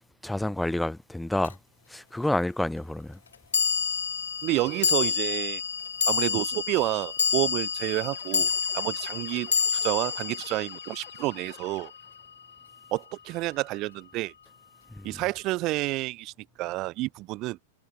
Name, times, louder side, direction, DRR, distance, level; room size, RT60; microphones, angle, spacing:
voice 1, 0.0-1.6 1.9-3.2 14.9-15.2, left 1 dB, 5° left, 0.8 m, -29 dB
sound 1, 1.4-1.5 3.5-12.0, left 7 dB, 90° left, 1.2 m, -28 dB
voice 2, 4.4-5.6 6.1-9.5 9.8-11.9 12.9-14.3 15.0-17.6, right 19 dB, 45° right, 1.3 m, -29 dB
sound 2, 8.1-12.3, left 28 dB, 50° left, 5.2 m, -52 dB
hypercardioid pair, 115°, 0 cm